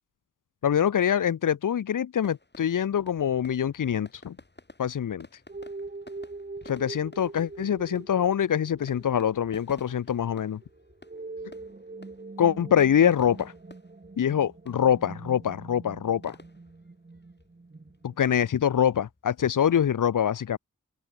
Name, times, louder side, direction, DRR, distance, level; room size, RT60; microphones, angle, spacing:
voice 1, 0.6-4.3 4.8-5.3 6.7-10.6 12.4-13.5 14.2-16.4 18.0-20.6, left 9 dB, 90° left, 0.6 m, -24 dB
sound 1, 2.2-19.8, left 2 dB, 35° left, 4.1 m, -53 dB
sound 2, 5.5-18.6, right 3 dB, 30° right, 1.3 m, -43 dB
wide cardioid pair, 60°, 31 cm